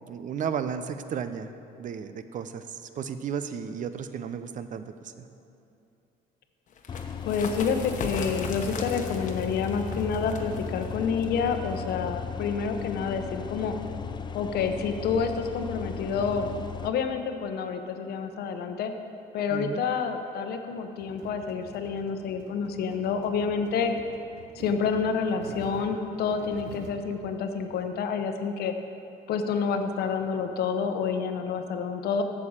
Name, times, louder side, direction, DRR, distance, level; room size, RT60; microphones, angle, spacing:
voice 1, 0.1-1.5 1.8-5.3 19.5-19.8, right 7 dB, 50° right, 11 dB, 0.6 m, -34 dB
sound 1, 6.7-12.1, left 4 dB, 50° left, 1.1 m, -39 dB
sound 2, 6.9-16.9, left 6 dB, 25° left, 0.4 m, -36 dB
voice 2, 7.2-13.7 14.3-16.5 16.8-18.9 19.3-23.9 24.5-28.7 29.3-32.2, left 6 dB, 70° left, 7 dB, 0.8 m, -28 dB
sound 3, 21.0-27.8, right 4 dB, 85° right, 0.9 m, -47 dB
8.7 x 6.8 x 7.3 m, 2.7 s
cardioid pair, 110°, 17 cm